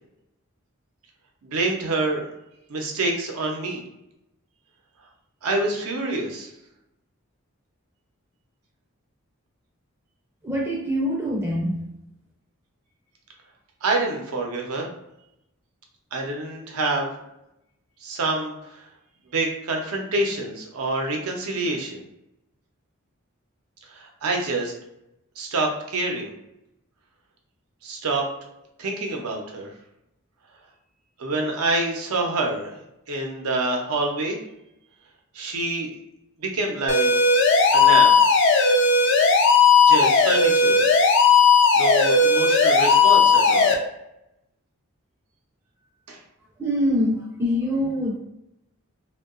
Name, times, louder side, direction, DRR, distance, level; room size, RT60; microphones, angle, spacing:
voice 1, 1.4-2.3 2.7-3.8 5.4-6.5 13.8-14.9 16.1-17.1 18.0-18.6 19.3-22.0 23.9-24.7 25.4-26.3 27.8-28.2 28.8-29.7 31.2-32.8 33.1-34.4 35.3-35.9 36.4-37.1 37.7-38.2 39.9-40.8 41.7-43.7 46.1-46.2, right 2 dB, 85° right, 1 dB, 0.6 m, -26 dB
voice 2, 10.4-11.9 46.6-48.2, equal, 10° right, -3 dB, 0.4 m, -24 dB
sound 1, 36.9-43.7, left 4 dB, 55° left, 0.3 m, -16 dB
2.7 x 2.2 x 2.4 m, 0.85 s
head